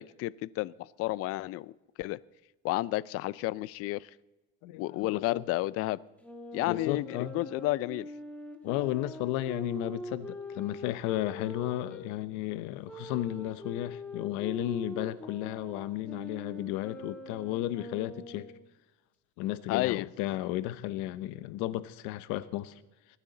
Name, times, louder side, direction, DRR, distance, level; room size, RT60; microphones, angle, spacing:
voice 1, 0.0-1.7 2.0-2.2 2.6-4.1 4.8-6.0 6.5-8.1 19.7-20.1, left 18 dB, 50° left, 21 dB, 0.4 m, -31 dB
voice 2, 4.6-5.4 6.6-7.4 8.6-18.5 19.4-22.8, left 14 dB, 75° left, 15 dB, 0.8 m, -34 dB
Wind instrument woodwind instrument, 6.2-12.1 12.8-18.6, left 1 dB, 5° left, 1.5 m, -43 dB
22.5 x 9.8 x 3.9 m, 1.1 s
cardioid pair, 140°, 30 cm